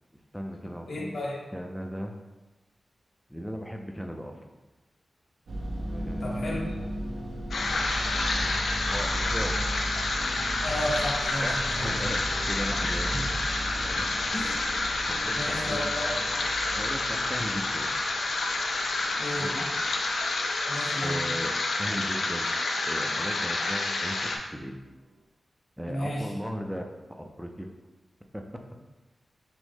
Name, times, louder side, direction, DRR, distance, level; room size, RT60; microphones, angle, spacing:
voice 1, 0.3-1.2 1.5-2.1 3.3-4.5 5.9-6.4 7.6-8.0 8.3-9.7 11.4-13.3 13.9-14.1 15.1-15.8 16.7-17.9 19.3-19.7 21.0-22.5 22.8-24.7 25.8-26.9 27.2-27.7 28.3-28.4, equal, ahead, 3 dB, 0.4 m, -37 dB
voice 2, 0.9-1.4 6.2-6.8 10.6-11.5 11.8-11.9 13.1-13.2 14.3-14.6 15.4-16.1 19.2-19.5 20.7-21.2 25.9-26.3, left 1 dB, 60° left, -4 dB, 1.1 m, -33 dB
sound 1, 5.5-23.8, right 1 dB, 90° right, 0.6 m, -37 dB
sound 2, 7.5-24.4, left 2 dB, 80° left, 0.5 m, -29 dB
6.1 x 2.1 x 3.5 m, 1.1 s
wide cardioid pair, 120°, 0 cm